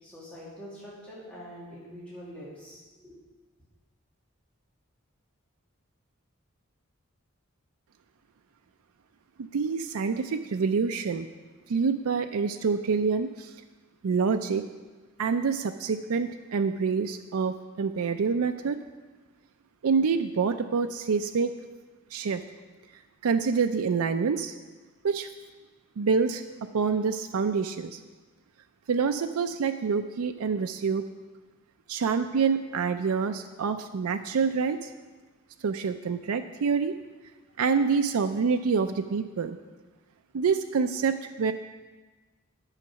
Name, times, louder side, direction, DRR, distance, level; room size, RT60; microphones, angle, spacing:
voice 1, 0.0-3.3, equal, 5° left, -9 dB, 2.1 m, -45 dB
voice 2, 9.5-11.3 11.7-13.5 14.0-14.6 15.2-18.8 19.8-21.5 22.1-22.4 23.2-24.5 25.0-25.3 26.0-26.4 26.7-28.0 28.9-31.0 31.9-34.9 35.6-37.0 37.6-39.6 40.3-41.5, right 5 dB, 90° right, 7 dB, 0.4 m, -26 dB
9.0 x 7.1 x 5.7 m, 1.3 s
head